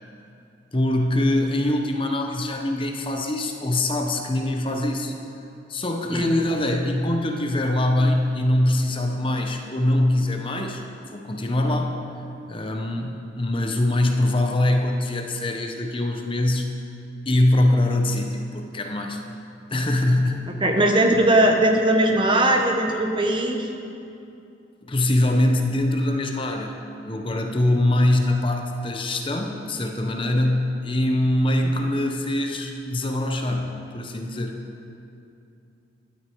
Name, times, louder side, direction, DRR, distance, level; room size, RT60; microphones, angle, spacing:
voice 1, 0.7-5.1 5.7-10.8 11.1-12.0 12.5-16.7 17.3-19.2 19.7-20.5 24.8-26.8 27.1-34.6, left 1 dB, 25° left, 3 dB, 0.8 m, -23 dB
voice 2, 20.6-23.7, right 1 dB, 25° right, 2 dB, 1.0 m, -19 dB
12.5 x 12.5 x 4.6 m, 2.7 s
head